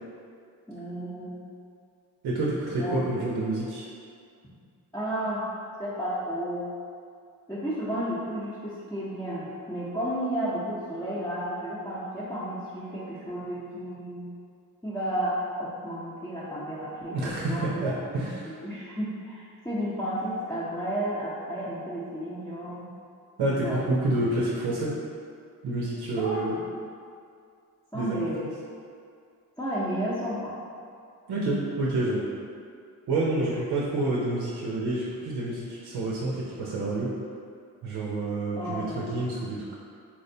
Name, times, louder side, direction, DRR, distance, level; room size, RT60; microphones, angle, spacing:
voice 1, 0.7-1.4 2.8-3.1 4.9-5.5 5.8-6.7 7.5-14.3 14.8-18.0 18.3-22.9 23.6-23.8 26.2-26.5 27.9-28.5 29.6-30.5 38.6-39.2, equal, 5° left, -10 dB, 0.7 m, -32 dB
voice 2, 2.2-3.9 17.1-18.6 23.4-24.9 25.6-26.6 27.9-28.2 31.3-32.3 33.1-37.1 37.8-39.7, right 2 dB, 80° right, -5 dB, 0.6 m, -28 dB
4.3 x 2.1 x 2.7 m, 2.3 s
supercardioid pair, 50°, 39 cm